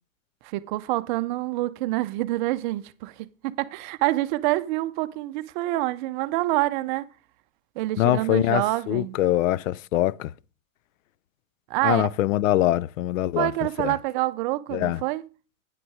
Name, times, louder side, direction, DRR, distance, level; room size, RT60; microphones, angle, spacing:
voice 1, 0.4-7.0 7.8-9.2 11.7-12.1 13.4-15.2, right 18 dB, 40° right, 0.5 m, -27 dB
voice 2, 8.0-10.3 11.8-13.5 13.8-13.9 14.7-15.0, left 14 dB, 70° left, 0.5 m, -23 dB
9.6 x 6.1 x 4.7 m
hypercardioid pair, 135°, 41 cm